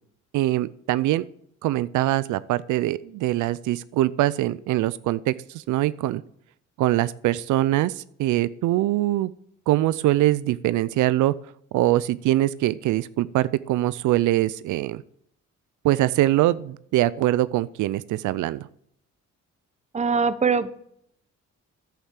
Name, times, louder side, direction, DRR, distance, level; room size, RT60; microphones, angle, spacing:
voice 1, 0.3-1.3 1.6-6.2 6.8-9.3 9.7-11.3 11.7-15.0 15.8-18.7, right 15 dB, 80° right, 17 dB, 0.5 m, -23 dB
voice 2, 19.9-20.7, right 5 dB, 25° right, 14 dB, 0.8 m, -22 dB
10.0 x 8.7 x 7.5 m, 0.71 s
cardioid pair, 90°, 30 cm